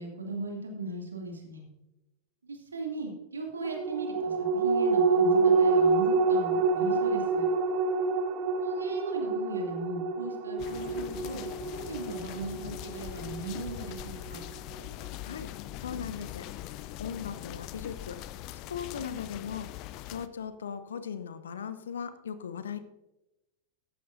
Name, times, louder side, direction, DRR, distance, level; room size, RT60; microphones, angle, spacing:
voice 1, 0.0-1.6 2.4-7.4 8.6-11.4 11.9-14.4, right 2 dB, 75° right, 1 dB, 2.5 m, -38 dB
sound 1, 3.6-14.4 14.8-14.9, right 4 dB, 40° right, 0.7 m, -27 dB
sound 2, 10.6-20.3, left 14 dB, 40° left, 0.5 m, -42 dB
voice 2, 15.2-16.5 17.0-18.2 18.5-19.7 20.1-22.8, left 7 dB, 65° left, 12 dB, 0.8 m, -38 dB
14.5 x 11.5 x 2.6 m, 0.97 s
figure-of-eight pair, 90°, 0 cm